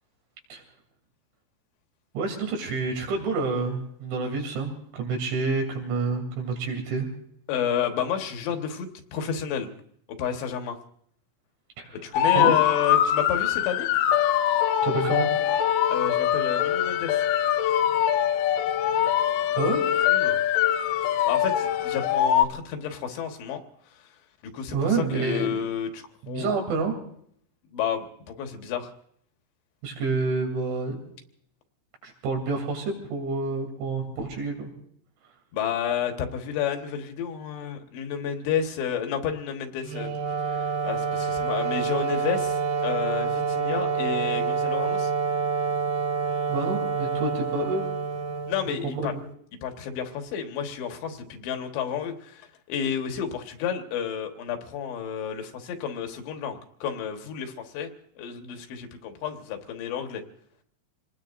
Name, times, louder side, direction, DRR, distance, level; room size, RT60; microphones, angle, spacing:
voice 1, 2.2-7.1 11.8-11.9 12.4-12.6 14.8-15.3 19.6-19.9 24.7-25.6 26.2-26.9 29.8-31.0 32.0-34.7 46.5-47.9 48.8-49.2, right 4 dB, 85° right, 2 dB, 5.6 m, -28 dB
voice 2, 7.5-9.7 10.1-10.8 12.0-13.9 15.9-17.2 20.1-20.4 21.3-23.6 24.5-26.5 27.7-28.9 35.5-40.1 40.5-45.1 48.5-49.1 49.6-57.9 58.2-60.2, left 8 dB, 75° left, 4 dB, 3.6 m, -31 dB
sound 1, 12.1-22.5, left 10 dB, 90° left, 3.4 m, -23 dB
Wind instrument woodwind instrument, 39.8-49.1, right 5 dB, 65° right, 3.3 m, -27 dB
27.0 x 19.5 x 2.6 m, 0.66 s
omnidirectional pair, 5.3 m